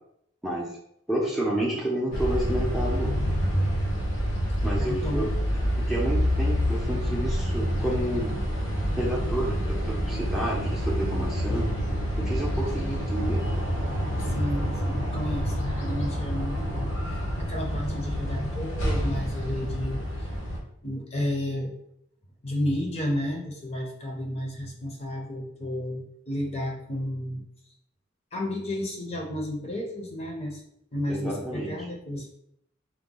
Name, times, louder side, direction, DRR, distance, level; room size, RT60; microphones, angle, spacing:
voice 1, 1.1-3.1 4.6-5.3 5.9-8.4 9.0-11.7 12.2-13.5 31.1-31.7, right 1 dB, ahead, -4 dB, 0.6 m, -30 dB
sound 1, 2.1-20.6, equal, 85° left, 1.1 m, -27 dB
voice 2, 4.8-5.2 14.3-20.3 20.8-21.7 22.4-27.4 28.3-30.6 30.9-32.3, left 1 dB, 30° left, 0 dB, 0.7 m, -32 dB
4.7 x 2.2 x 3.8 m, 0.72 s
head